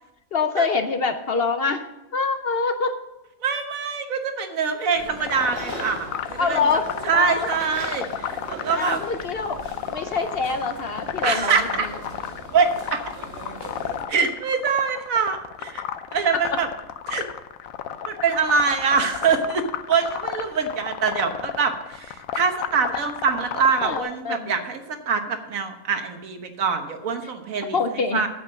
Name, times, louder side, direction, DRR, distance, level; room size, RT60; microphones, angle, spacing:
voice 1, 0.3-1.9 2.1-3.0 6.4-7.5 8.7-9.6 9.9-11.9 23.8-24.5 27.7-28.2, left 4 dB, 55° left, 8 dB, 0.8 m, -25 dB
voice 2, 3.4-6.6 7.0-9.0 11.2-11.9 12.5-13.0 14.1-15.9 16.1-16.7 17.1-17.3 18.0-28.3, right 5 dB, 75° right, 6 dB, 1.5 m, -24 dB
sound 1, 4.9-14.1, right 2 dB, 45° right, 1.9 m, -39 dB
sound 2, 5.1-24.0, left 9 dB, 75° left, 1.1 m, -33 dB
9.1 x 7.7 x 6.2 m, 0.97 s
omnidirectional pair, 1.5 m